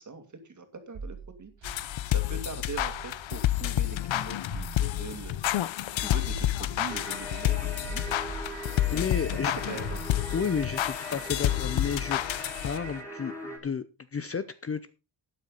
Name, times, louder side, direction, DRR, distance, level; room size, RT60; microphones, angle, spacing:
voice 1, 0.0-8.4 8.9-9.0 9.4-10.0, right 4 dB, 40° right, 7 dB, 2.5 m, -42 dB
sound 1, 0.9-9.3 9.6-11.5, right 4 dB, 75° right, 3.3 m, -45 dB
sound 2, 1.6-13.0, left 13 dB, 75° left, 0.7 m, -29 dB
sound 3, 6.9-13.6, equal, 5° left, 3.3 m, -41 dB
voice 2, 8.9-9.5 10.3-12.2 12.6-13.8 14.1-14.9, left 6 dB, 30° left, 13 dB, 0.6 m, -32 dB
12.0 x 9.7 x 4.0 m, 0.29 s
wide cardioid pair, 160°, 46 cm